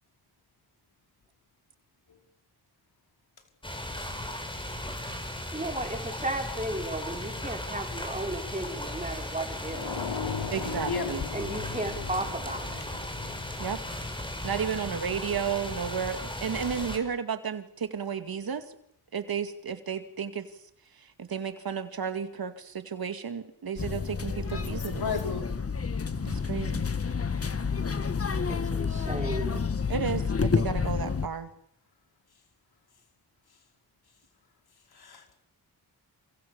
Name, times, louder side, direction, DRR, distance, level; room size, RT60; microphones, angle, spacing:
sound 1, 3.6-17.0, left 1 dB, 15° left, 6.5 m, -36 dB
voice 1, 5.5-10.2 11.3-12.9 28.5-29.6, right 1 dB, 20° right, 3 dB, 5.7 m, -34 dB
sound 2, 9.7-14.4, left 6 dB, 85° left, 4.5 m, -38 dB
voice 2, 10.5-11.2 13.6-13.8 14.4-18.7 19.1-20.5 21.0-25.2 26.3-26.9 29.9-31.5, right 7 dB, 65° right, 9 dB, 2.3 m, -33 dB
sound 3, 23.8-31.3, left 5 dB, 35° left, 1.6 m, -29 dB
voice 3, 24.5-25.4 35.0-35.4, left 5 dB, 70° left, 4 dB, 5.2 m, -33 dB
28.5 x 27.0 x 7.1 m, 0.68 s
cardioid pair, 90°, 39 cm